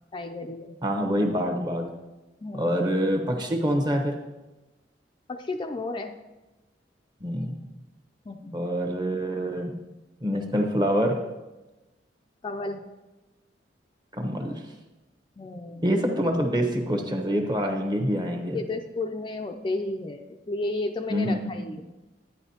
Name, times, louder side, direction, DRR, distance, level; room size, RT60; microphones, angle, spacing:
voice 1, 0.1-0.7 2.4-2.9 5.3-6.1 8.3-8.6 12.4-12.8 15.4-15.9 18.5-21.8, left 2 dB, 25° left, 5 dB, 0.4 m, -33 dB
voice 2, 0.8-1.9 2.5-4.2 7.2-7.5 8.5-9.7 10.2-11.2 14.1-14.5 15.8-18.6 21.1-21.4, equal, 25° right, 2 dB, 1.0 m, -26 dB
11.0 x 9.5 x 2.8 m, 1.1 s
head